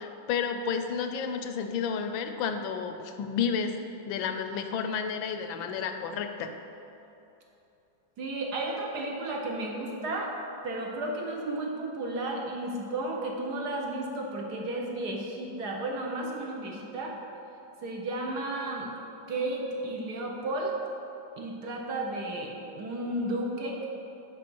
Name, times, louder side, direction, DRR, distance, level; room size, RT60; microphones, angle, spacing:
voice 1, 0.0-6.5, left 6 dB, 80° left, 7 dB, 1.3 m, -31 dB
voice 2, 8.2-10.3 10.6-17.1 17.8-18.9 19.3-20.8 21.4-23.9, right 2 dB, 60° right, 0 dB, 1.3 m, -33 dB
6.8 x 5.2 x 6.1 m, 2.9 s
omnidirectional pair, 2.1 m